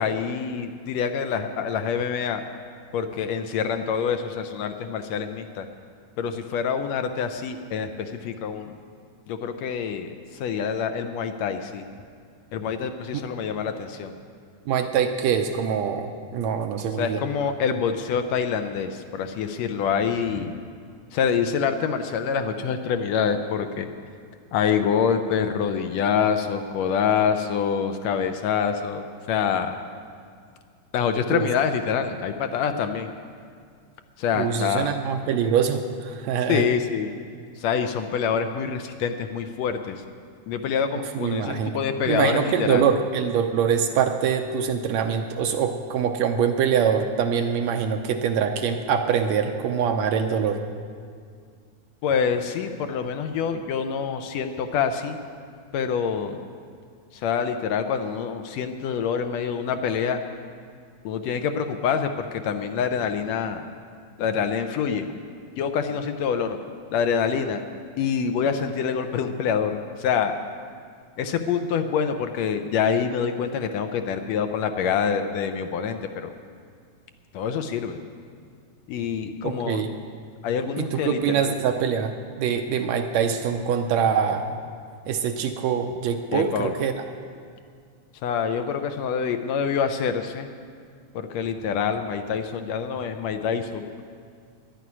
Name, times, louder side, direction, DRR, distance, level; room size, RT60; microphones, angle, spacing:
voice 1, 0.0-2.4 2.9-5.7 6.2-8.7 9.3-11.9 12.5-14.2 17.0-20.5 21.1-23.9 24.5-29.8 30.9-33.1 34.2-34.9 36.5-37.1 37.6-40.0 40.5-42.9 52.0-55.2 55.7-56.4 57.1-60.2 61.0-63.6 64.2-65.1 65.6-66.6 66.9-67.6 68.0-70.3 71.2-76.3 77.3-78.0 78.9-79.8 80.4-81.5 86.3-86.7 88.2-90.5 91.1-93.8, left 7 dB, 75° left, 7 dB, 1.7 m, -26 dB
voice 2, 14.7-17.2 31.3-31.5 34.3-36.8 41.2-41.8 42.1-50.6 79.4-79.9 80.8-82.1 82.4-84.5 85.1-86.9, right 7 dB, 80° right, 6 dB, 1.8 m, -24 dB
11.5 x 9.3 x 9.8 m, 2.2 s
omnidirectional pair, 3.5 m